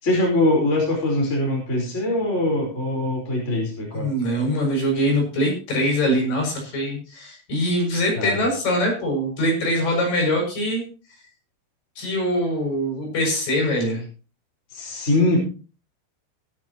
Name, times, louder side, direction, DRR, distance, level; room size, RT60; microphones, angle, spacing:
voice 1, 0.0-4.1 8.1-8.4 14.7-15.4, left 1 dB, 15° left, -2 dB, 4.7 m, -22 dB
voice 2, 3.9-10.9 12.0-14.0, equal, 45° left, 0 dB, 8.4 m, -23 dB
17.5 x 12.0 x 3.1 m, 0.35 s
omnidirectional pair, 5.7 m